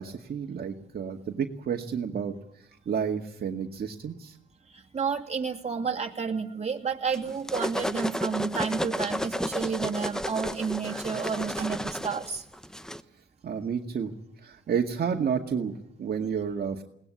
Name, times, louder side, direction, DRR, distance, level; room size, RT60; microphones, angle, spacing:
voice 1, 0.0-2.3 2.9-4.4 13.4-14.1 14.4-16.8, right 7 dB, 50° right, 1 dB, 2.1 m, -30 dB
voice 2, 4.7-12.4, right 6 dB, 35° right, 1 dB, 2.8 m, -31 dB
sound 1, 7.1-13.0, equal, 5° left, 0.9 m, -32 dB
21.5 x 18.5 x 8.5 m, 0.74 s
cardioid pair, 90°, 20 cm